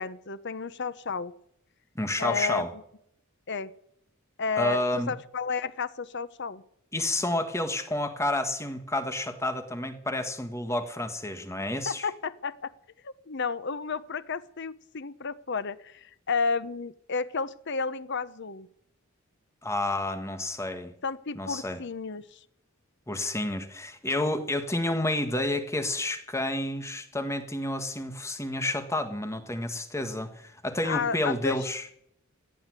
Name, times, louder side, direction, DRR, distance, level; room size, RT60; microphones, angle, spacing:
voice 1, 0.0-1.3 2.2-2.7 3.5-3.7 4.4-4.8 5.1-6.6 11.9-12.7 13.0-18.7 21.0-22.4 30.8-31.6, left 5 dB, 55° left, 15 dB, 0.9 m, -32 dB
voice 2, 1.9-2.7 4.6-5.1 6.9-12.1 19.6-20.9 21.3-21.8 23.1-31.8, left 1 dB, 15° left, 8 dB, 1.6 m, -30 dB
16.5 x 8.7 x 9.6 m, 0.70 s
head